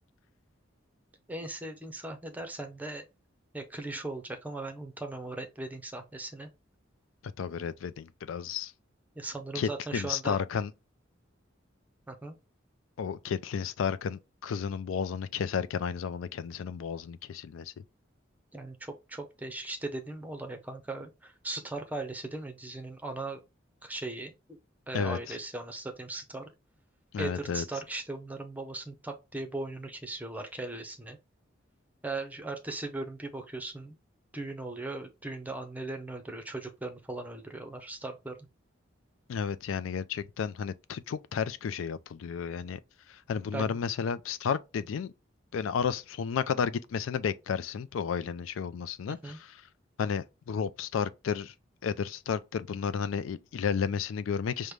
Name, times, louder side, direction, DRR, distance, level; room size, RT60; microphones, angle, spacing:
voice 1, 1.3-3.1 3.5-6.5 9.2-10.4 12.1-12.4 18.5-23.4 23.8-24.6 24.9-26.5 27.2-31.2 32.0-34.0 34.3-38.5 43.5-43.8 49.1-49.4, right 2 dB, 10° right, 0.6 m, -38 dB
voice 2, 7.4-8.7 9.5-10.7 13.0-17.7 24.9-25.2 27.1-27.6 39.3-42.8 43.1-45.1 45.5-49.6 50.0-51.5 51.8-54.7, left 7 dB, 90° left, 0.3 m, -32 dB
5.1 x 2.1 x 3.1 m
head